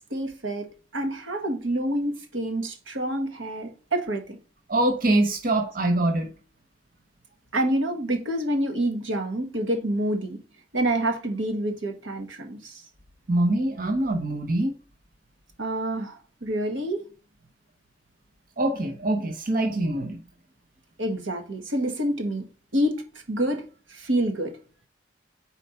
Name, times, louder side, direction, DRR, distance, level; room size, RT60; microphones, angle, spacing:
voice 1, 0.1-4.3 7.5-10.4 10.7-12.8 15.6-17.0 21.0-22.4 22.7-23.0 23.3-24.6, right 1 dB, 85° right, 1.5 m, -27 dB
voice 2, 4.7-6.3 13.3-14.8 18.6-20.2, right 1 dB, 45° right, 0.8 m, -24 dB
4.5 x 4.3 x 5.4 m
head